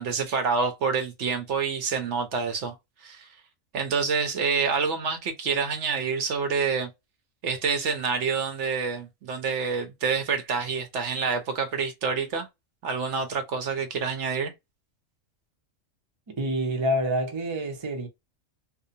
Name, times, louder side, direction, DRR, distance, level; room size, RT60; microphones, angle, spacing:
voice 1, 0.0-2.8 3.0-3.3 3.7-6.9 7.4-12.5 12.8-14.5, right 5 dB, 65° right, 1.0 m, -27 dB
voice 2, 16.3-18.1, equal, 30° right, 0.5 m, -27 dB
2.7 x 2.1 x 2.6 m
omnidirectional pair, 1.4 m